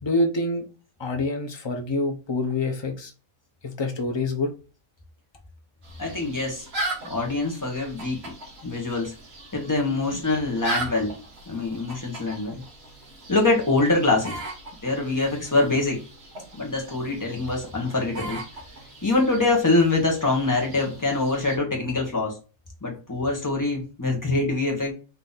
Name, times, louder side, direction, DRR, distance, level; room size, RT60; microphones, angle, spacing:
voice 1, 0.0-0.6 1.0-3.1 3.6-4.5, left 2 dB, 45° left, 0.3 m, -26 dB
sound 1, 5.8-21.6, right 2 dB, 45° right, 1.5 m, -38 dB
voice 2, 6.0-6.7 7.0-8.4 8.6-9.1 9.5-11.1 11.5-12.6 13.3-14.4 14.8-16.0 16.5-18.4 19.0-22.4 22.8-24.9, left 2 dB, 15° left, 1.0 m, -24 dB
3.8 x 2.8 x 3.9 m
omnidirectional pair, 1.6 m